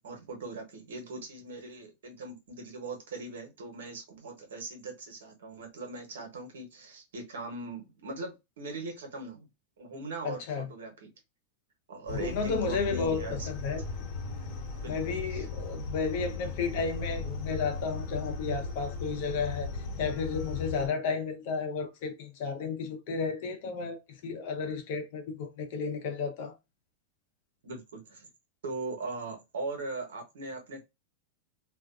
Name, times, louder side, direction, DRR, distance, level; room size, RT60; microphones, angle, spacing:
voice 1, 0.0-9.5 9.8-10.4 10.7-11.1 11.9-13.7 14.8-15.4 27.6-28.3 28.6-30.8, right 3 dB, 85° right, 1.0 m, -40 dB
voice 2, 10.2-10.7 12.1-13.8 14.9-19.7 20.0-26.6, left 5 dB, 60° left, 0.7 m, -33 dB
sound 1, 12.1-20.9, left 4 dB, 45° left, 1.1 m, -37 dB
2.4 x 2.3 x 2.4 m
hypercardioid pair, 125°, 0 cm